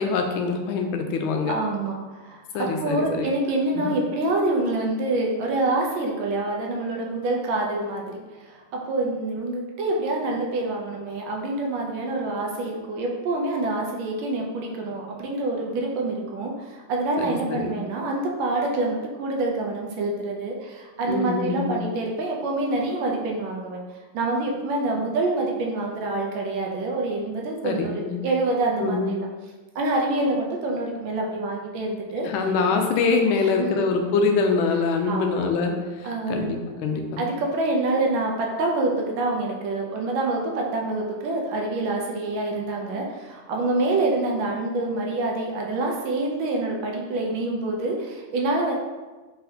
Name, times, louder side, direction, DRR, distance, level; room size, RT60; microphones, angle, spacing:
voice 1, 0.0-1.6 2.5-3.3 3.7-4.0 17.2-17.8 21.1-21.8 27.6-28.2 28.8-29.2 32.2-37.2, left 4 dB, 80° left, 4 dB, 1.4 m, -24 dB
voice 2, 1.5-8.1 8.5-23.8 24.1-29.2 29.7-32.3 32.7-32.8 33.6-33.9 35.1-35.5 36.0-36.5 37.2-48.7, right 2 dB, 70° right, 0 dB, 1.3 m, -26 dB
4.3 x 3.9 x 2.7 m, 1.2 s
omnidirectional pair, 2.4 m